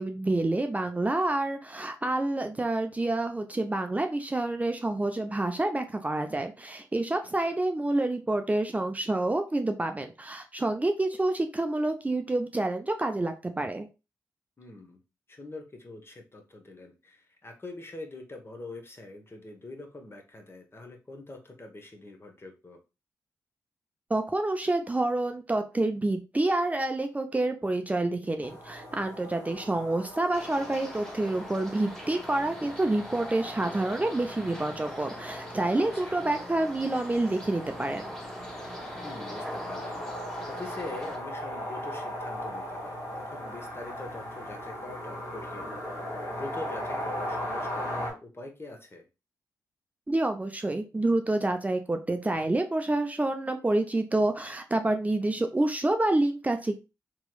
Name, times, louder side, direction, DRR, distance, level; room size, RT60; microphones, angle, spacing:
voice 1, 0.0-13.9 24.1-38.1 50.1-56.8, right 2 dB, 20° right, 6 dB, 0.5 m, -28 dB
voice 2, 7.2-7.6 14.6-15.0 15.3-22.8 35.7-36.3 39.0-40.0 40.5-45.7 46.3-49.1, left 2 dB, 35° left, 4 dB, 0.9 m, -44 dB
sound 1, 28.4-48.1, equal, 80° left, 1.7 m, -39 dB
sound 2, 30.3-41.2, equal, 5° left, 1.3 m, -42 dB
3.0 x 3.0 x 2.3 m, 0.28 s
supercardioid pair, 40°, 7 cm